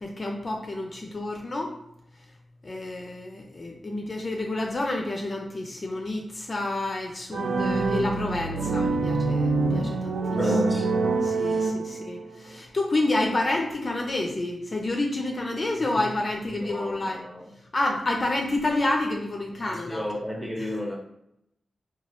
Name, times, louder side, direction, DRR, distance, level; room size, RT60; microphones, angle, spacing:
voice 1, 0.0-1.7 2.6-10.4 11.2-17.2 17.7-20.1 20.6-20.7, left 2 dB, 35° left, 0.4 m, -29 dB
sound 1, 7.3-12.3, right 3 dB, 85° right, 0.4 m, -25 dB
voice 2, 10.4-11.7 15.8-15.9 16.5-17.5 19.7-21.0, left 1 dB, 5° right, 0.7 m, -32 dB
2.9 x 2.3 x 3.0 m
wide cardioid pair, 90°, 0 cm